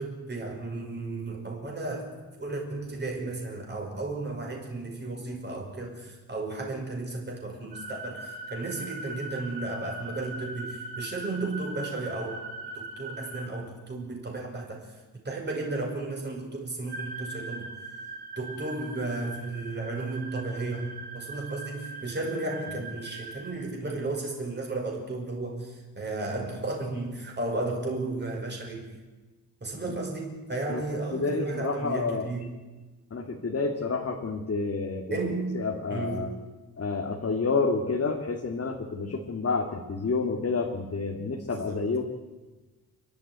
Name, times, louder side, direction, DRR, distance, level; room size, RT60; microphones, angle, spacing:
voice 1, 0.0-12.4 12.7-17.7 18.4-29.0 29.6-32.5 35.1-36.4 41.5-41.9, right 2 dB, 30° right, 0 dB, 5.5 m, -34 dB
sound 1, 7.7-13.5 16.9-23.5, right 2 dB, 85° right, 7.5 m, -40 dB
voice 2, 31.1-32.3 33.1-35.2 35.5-36.3 36.8-42.0, left 4 dB, 40° left, 1 dB, 2.0 m, -29 dB
29.0 x 12.0 x 9.4 m, 1.2 s
wide cardioid pair, 115°, 38 cm